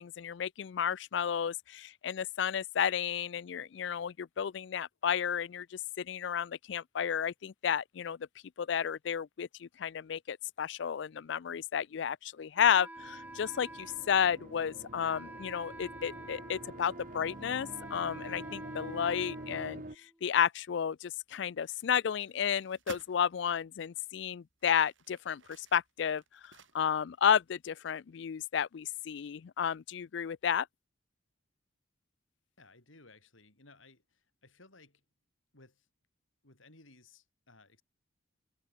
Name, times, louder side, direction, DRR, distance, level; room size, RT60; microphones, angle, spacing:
voice 1, 0.0-8.2 8.6-19.8 20.2-30.7, left 8 dB, 65° left, 0.4 m, -32 dB
Wind instrument woodwind instrument, 12.6-20.3, right 1 dB, 10° right, 4.7 m, -49 dB
sound 1, 13.0-20.0, right 1 dB, 45° right, 1.8 m, -46 dB
sound 2, 21.6-23.2 23.9-24.0 24.5-27.2 27.5-27.6, right 4 dB, 75° right, 2.8 m, -53 dB
voice 2, 32.6-35.0 35.5-35.9 36.4-37.8, left 3 dB, 85° left, 6.2 m, -59 dB
head